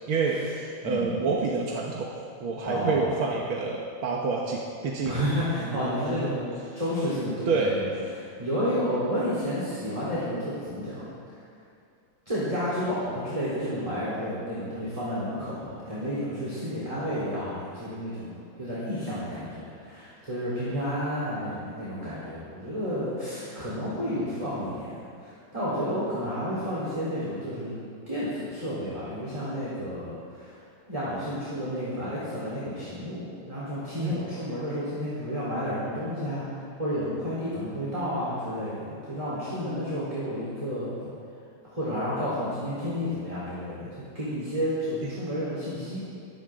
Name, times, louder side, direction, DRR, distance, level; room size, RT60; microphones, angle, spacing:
voice 1, 0.1-2.1 2.4-5.3 5.7-6.4 7.5-7.9 20.7-21.1 34.0-34.2 45.0-45.1, right 4 dB, 85° right, -2 dB, 2.2 m, -28 dB
voice 2, 0.8-1.2 2.6-3.1 5.0-6.4 6.7-7.9 8.4-11.1 12.3-24.9 25.2-30.6 30.9-40.9 41.6-46.1, equal, 15° right, -9 dB, 4.1 m, -31 dB
22.5 x 16.0 x 3.9 m, 2.5 s
omnidirectional pair, 2.2 m